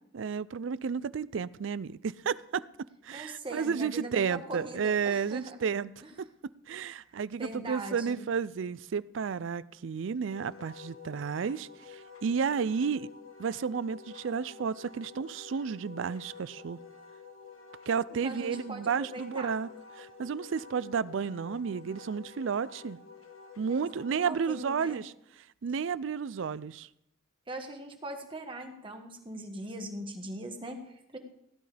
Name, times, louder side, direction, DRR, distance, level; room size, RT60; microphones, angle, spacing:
voice 1, 0.1-2.6 3.0-5.9 6.7-13.1 13.4-16.8 17.9-19.7 20.0-23.0 23.6-25.1 25.6-26.9, right 6 dB, 65° right, 18 dB, 0.4 m, -32 dB
voice 2, 3.1-5.6 6.0-6.1 7.3-8.2 18.1-19.6 23.7-25.0 27.5-31.2, right 1 dB, 25° right, 4 dB, 1.4 m, -41 dB
Wind instrument woodwind instrument, 10.3-24.3, left 5 dB, 85° left, 1.6 m, -50 dB
16.5 x 12.0 x 3.4 m, 0.78 s
head